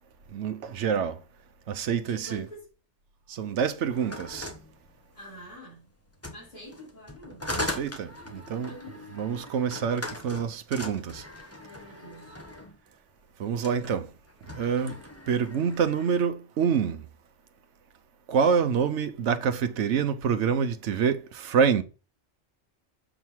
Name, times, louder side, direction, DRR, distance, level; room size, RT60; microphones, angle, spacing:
voice 1, 0.3-1.2 1.7-2.5 3.3-4.5 7.5-8.7 9.2-11.2 13.4-14.1 14.6-15.0 15.3-17.0 18.3-21.8, right 7 dB, 85° right, 1.1 m, -26 dB
voice 2, 2.1-2.7 5.1-5.9 6.3-7.5 8.6-9.1 11.6-12.4, left 1 dB, 40° left, 3.2 m, -46 dB
sound 1, 3.9-5.5 6.1-12.8 13.5-13.9 14.3-16.3, left 1 dB, 15° left, 1.0 m, -39 dB
7.1 x 3.8 x 4.5 m
omnidirectional pair, 1.2 m